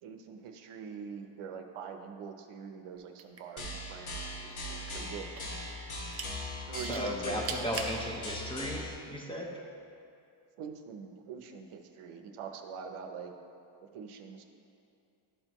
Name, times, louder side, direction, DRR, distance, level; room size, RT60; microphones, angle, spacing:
voice 1, 0.0-5.4 6.7-7.5 10.6-13.3 13.8-14.4, right 6 dB, 85° right, 5 dB, 0.8 m, -44 dB
sound 1, 3.1-4.2 4.5-5.6 6.0-6.3 6.7-8.0 8.7-8.8, right 5 dB, 30° right, 0.5 m, -39 dB
sound 2, 3.6-8.9, left 1 dB, 80° left, 1.6 m, -40 dB
voice 2, 6.9-9.6, equal, 10° left, -1 dB, 0.7 m, -36 dB
12.0 x 4.4 x 3.0 m, 2.6 s
cardioid pair, 140°, 49 cm